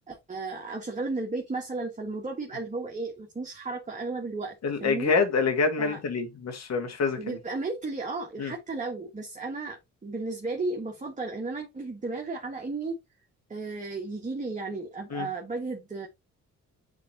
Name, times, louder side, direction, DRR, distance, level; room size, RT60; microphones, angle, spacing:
voice 1, 0.1-4.5 4.8-5.1 5.8-6.0 7.2-12.9 13.5-16.1, right 3 dB, 25° right, 1.5 m, -34 dB
voice 2, 4.6-7.4 8.4-8.5 15.1-15.3, left 4 dB, 60° left, 2.0 m, -26 dB
8.9 x 3.7 x 2.9 m
cardioid pair, 90°, 30 cm